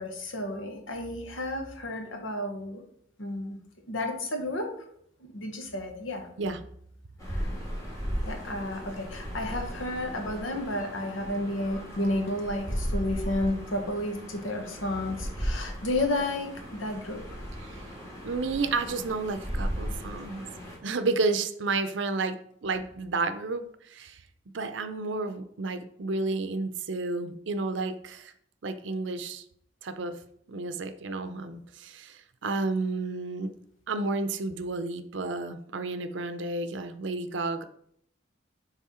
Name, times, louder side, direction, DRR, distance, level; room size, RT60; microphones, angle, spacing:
voice 1, 0.0-2.8 3.2-3.6 3.9-4.7 5.3-6.3 7.3-7.5 8.2-17.4, left 1 dB, 85° left, 4 dB, 1.3 m, -32 dB
sound 1, 7.2-20.8, equal, 20° left, 1.9 m, -36 dB
voice 2, 18.2-20.4 20.8-24.2 24.5-28.3 28.6-29.4 29.8-30.2 30.5-33.5 33.9-37.6, right 3 dB, 65° right, 10 dB, 0.6 m, -31 dB
7.3 x 3.4 x 4.3 m, 0.68 s
head